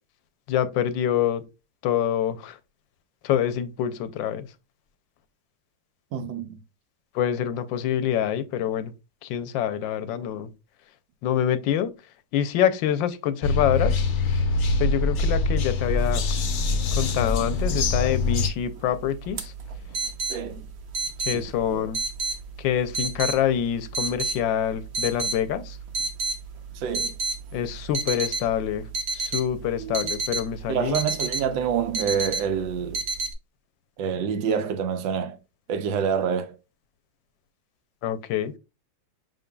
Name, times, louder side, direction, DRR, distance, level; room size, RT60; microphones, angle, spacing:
voice 1, 0.5-1.4 1.8-2.6 3.2-4.5 7.1-8.9 9.2-10.5 11.2-11.9 12.3-14.0 14.8-16.2 16.9-19.5 21.2-22.0 22.6-25.8 27.5-28.9 29.1-31.1 38.0-38.5, left 10 dB, 85° left, 1.3 m, -26 dB
voice 2, 6.1-6.6 20.3-20.6 26.7-27.1 30.7-33.0 34.0-35.4 35.7-36.5, right 7 dB, 80° right, 1.4 m, -27 dB
sound 1, 13.4-18.5, left 3 dB, 60° left, 0.7 m, -24 dB
sound 2, 17.2-33.3, right 3 dB, 60° right, 1.1 m, -32 dB
5.8 x 3.9 x 2.2 m
omnidirectional pair, 2.0 m